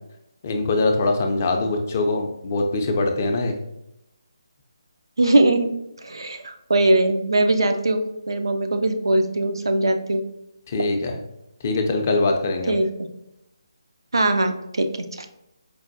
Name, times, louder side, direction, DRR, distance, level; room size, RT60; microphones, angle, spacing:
voice 1, 0.4-3.6 10.7-11.2 11.6-12.7, left 2 dB, 30° left, 4 dB, 0.4 m, -22 dB
voice 2, 5.2-5.7 6.0-10.2 12.7-12.9 14.1-15.0, right 2 dB, 65° right, 6 dB, 0.4 m, -20 dB
4.5 x 2.2 x 2.5 m, 0.86 s
figure-of-eight pair, 150°, 3 cm